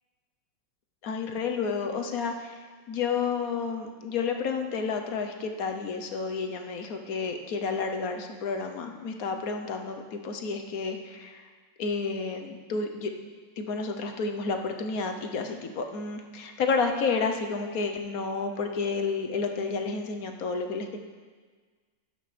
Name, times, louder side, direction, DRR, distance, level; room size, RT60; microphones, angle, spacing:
voice 1, 1.0-2.6 2.9-11.4 11.8-13.1 13.6-21.0, left 4 dB, 55° left, 4 dB, 1.1 m, -30 dB
12.0 x 10.5 x 3.3 m, 1.5 s
omnidirectional pair, 2.1 m